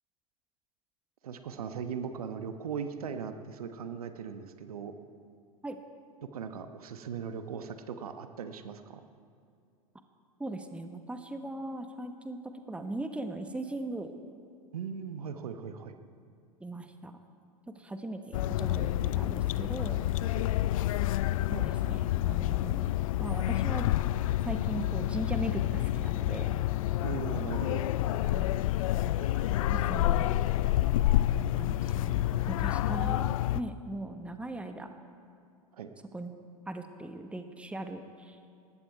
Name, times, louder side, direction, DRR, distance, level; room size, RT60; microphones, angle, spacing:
voice 1, 1.2-4.9 6.3-9.0 14.7-16.0 20.3-20.4 27.0-27.9 35.7-35.9, right 6 dB, 70° right, 9 dB, 1.1 m, -38 dB
voice 2, 10.4-14.1 16.6-17.2 17.7-20.1 21.5-22.9 23.2-23.9 24.4-26.6 28.2-28.6 29.7-30.3 31.4-35.0 36.1-36.3 36.7-38.4, right 2 dB, 5° right, 7 dB, 1.1 m, -39 dB
sound 1, 18.3-33.6, left 14 dB, 60° left, 0.5 m, -28 dB
sound 2, 26.3-33.4, left 1 dB, 85° left, 2.9 m, -55 dB
19.5 x 14.5 x 4.7 m, 2.4 s
figure-of-eight pair, 85°, 19 cm